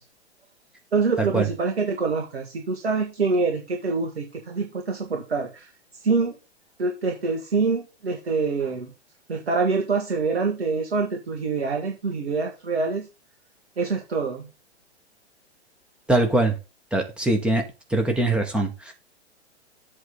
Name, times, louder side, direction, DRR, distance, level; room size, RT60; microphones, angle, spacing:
voice 1, 0.9-6.3 6.8-8.9 9.3-13.1 13.8-14.5, right 4 dB, 65° right, 3 dB, 1.8 m, -25 dB
voice 2, 16.1-16.5 16.9-17.6 17.9-18.9, right 2 dB, 5° right, 3 dB, 1.3 m, -22 dB
7.9 x 3.7 x 6.4 m, 0.28 s
figure-of-eight pair, 110°, 34 cm